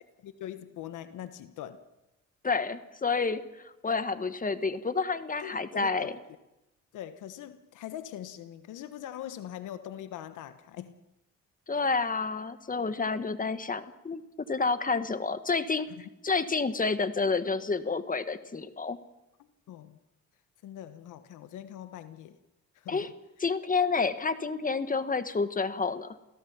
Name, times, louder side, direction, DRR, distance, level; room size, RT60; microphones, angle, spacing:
voice 1, 0.2-1.8 5.4-6.1 6.9-11.0 19.7-20.0 20.6-22.4 22.7-23.1, left 11 dB, 85° left, 11 dB, 1.3 m, -42 dB
voice 2, 2.4-6.1 11.7-14.2 14.5-15.9 16.2-19.0 22.9-23.1 23.4-26.2, left 4 dB, 25° left, 11 dB, 1.7 m, -29 dB
28.5 x 16.5 x 7.3 m, 0.96 s
cardioid pair, 90°, 30 cm